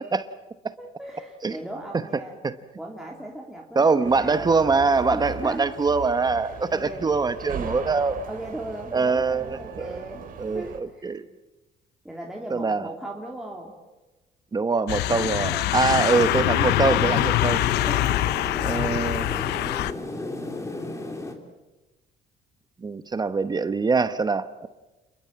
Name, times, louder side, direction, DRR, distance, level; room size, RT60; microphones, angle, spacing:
voice 1, 0.8-2.4 2.8-4.5 5.1-5.7 6.3-7.1 8.3-10.2 10.5-11.2 12.0-13.7 15.5-16.0 17.6-18.1 18.4-18.5, right 1 dB, 5° right, 3.0 m, -38 dB
voice 2, 3.8-8.2 8.9-10.0 10.4-11.2 12.5-12.9 14.5-17.6 18.6-19.3 22.8-24.7, right 4 dB, 25° right, 1.0 m, -23 dB
sound 1, 4.0-10.8, right 7 dB, 55° right, 3.5 m, -38 dB
sound 2, 14.9-19.9, left 15 dB, 80° left, 0.8 m, -24 dB
sound 3, 16.1-21.3, left 2 dB, 15° left, 3.4 m, -35 dB
29.0 x 21.5 x 7.6 m
cardioid pair, 110°, 17 cm